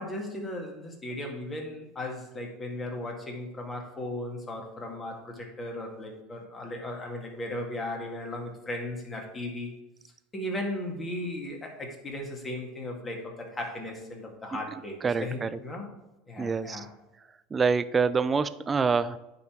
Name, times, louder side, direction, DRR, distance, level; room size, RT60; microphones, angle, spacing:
voice 1, 0.0-9.7 10.3-15.9 16.3-16.9, left 1 dB, 20° left, 1 dB, 2.0 m, -36 dB
voice 2, 15.0-15.6 16.4-16.9 17.5-19.2, right 5 dB, 25° right, 14 dB, 0.4 m, -26 dB
9.2 x 3.9 x 4.5 m, 1.0 s
hypercardioid pair, 85°, 0 cm